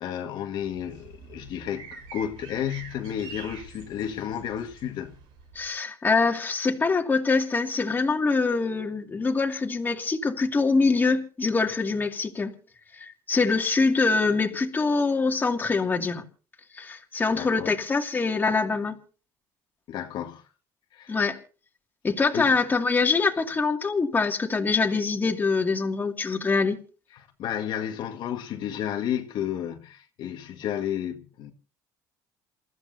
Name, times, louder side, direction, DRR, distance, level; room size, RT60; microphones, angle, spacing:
voice 1, 0.0-5.2 17.3-17.7 19.9-20.4 20.9-21.2 22.3-22.5 27.1-31.5, left 10 dB, 60° left, 1.8 m, -32 dB
sound 1, 0.6-5.7, right 5 dB, 80° right, 7.5 m, -46 dB
voice 2, 5.5-12.5 12.9-16.2 16.7-18.9 21.1-21.4 22.0-26.8, left 4 dB, 20° left, 2.4 m, -24 dB
28.5 x 14.5 x 2.8 m
cardioid pair, 125°, 9 cm